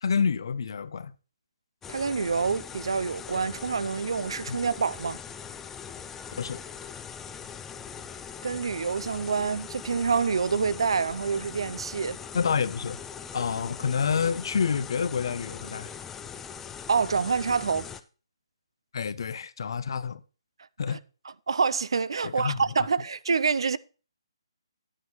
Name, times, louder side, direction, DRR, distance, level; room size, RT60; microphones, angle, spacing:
voice 1, 0.0-1.1 4.5-4.6 6.4-6.6 12.3-13.0 13.3-15.9 18.9-20.2 20.8-21.0 22.2-22.6, left 6 dB, 60° left, 0.7 m, -28 dB
sound 1, 1.8-18.0, left 7 dB, 10° left, 0.5 m, -41 dB
voice 2, 1.9-5.2 8.4-12.2 16.9-17.9 21.5-23.8, right 5 dB, 65° right, 0.5 m, -27 dB
10.5 x 9.9 x 3.1 m
figure-of-eight pair, 145°, 3 cm